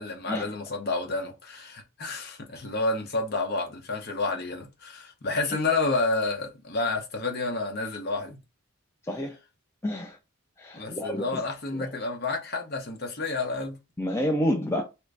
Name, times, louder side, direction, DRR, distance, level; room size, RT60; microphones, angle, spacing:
voice 1, 0.0-8.4 10.7-13.8, left 3 dB, 50° left, 0.8 m, -30 dB
voice 2, 9.1-9.4 9.8-10.2 10.6-11.4 11.7-11.9 14.0-14.8, equal, 10° left, 0.3 m, -29 dB
3.0 x 2.5 x 3.2 m
head